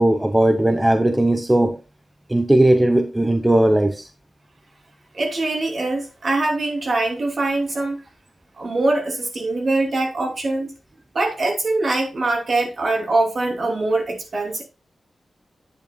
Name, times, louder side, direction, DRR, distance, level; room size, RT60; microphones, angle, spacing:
voice 1, 0.0-1.8 2.3-4.1, right 1 dB, 10° right, 0.6 m, -17 dB
voice 2, 5.1-8.0 8.6-10.7 11.1-14.6, right 2 dB, 50° right, 2.8 m, -23 dB
9.2 x 8.2 x 2.2 m
wide cardioid pair, 105°, 0 cm